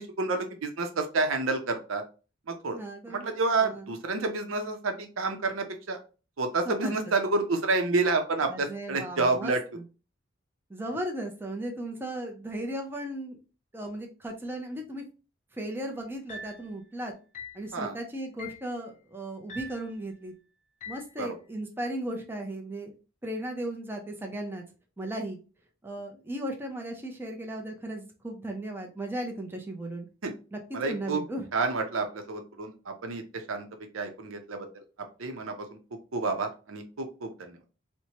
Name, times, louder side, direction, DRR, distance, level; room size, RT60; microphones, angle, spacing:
voice 1, 0.0-2.0 2.5-2.8 3.1-6.0 6.4-9.6 17.7-17.9 21.2-21.3 30.2-30.3 30.7-31.2 31.5-32.7 33.0-33.2 33.5-33.7 33.9-34.8 35.2-35.5 36.1-37.6, right 3 dB, 85° right, 5 dB, 0.7 m, -29 dB
voice 2, 2.7-3.3 3.6-3.9 6.6-7.1 8.5-9.8 10.7-13.4 13.7-15.0 15.5-17.1 17.5-20.3 20.9-22.9 23.2-24.6 25.0-25.4 25.8-30.1 30.5-31.5, right 1 dB, 10° right, 1 dB, 0.5 m, -36 dB
sound 1, 16.3-16.7 17.3-17.7 18.4-18.7 19.5-19.9 20.8-21.1, left 2 dB, 35° left, 0.4 m, -42 dB
4.3 x 2.1 x 2.8 m, 0.34 s
head